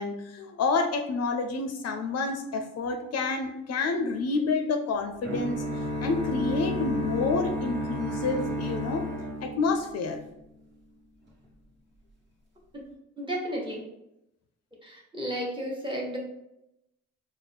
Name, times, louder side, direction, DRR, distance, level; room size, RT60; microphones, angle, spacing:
voice 1, 0.0-5.6 6.0-9.0 9.4-10.2, left 4 dB, 55° left, 4 dB, 0.5 m, -29 dB
sound 1, 5.2-10.2, equal, 35° right, 1.3 m, -31 dB
voice 2, 13.2-13.8 14.8-16.2, equal, 15° right, -2 dB, 1.1 m, -33 dB
4.1 x 2.0 x 3.3 m, 0.85 s
cardioid pair, 90°, 30 cm